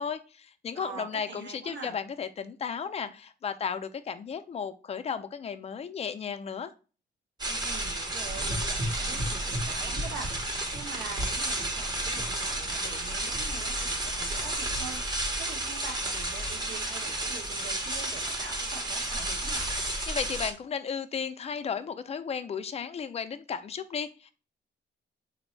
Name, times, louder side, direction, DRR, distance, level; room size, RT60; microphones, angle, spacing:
voice 1, 0.0-6.7 20.1-24.3, left 6 dB, 35° left, 11 dB, 0.4 m, -34 dB
voice 2, 0.7-2.0 7.4-19.7, right 5 dB, 70° right, 3 dB, 1.0 m, -44 dB
sound 1, 7.4-20.5, right 1 dB, 20° right, 0.7 m, -32 dB
Gurgling / Engine, 8.2-15.0, equal, 50° right, 1.3 m, -38 dB
4.0 x 2.6 x 3.1 m, 0.35 s
cardioid pair, 130°, 19 cm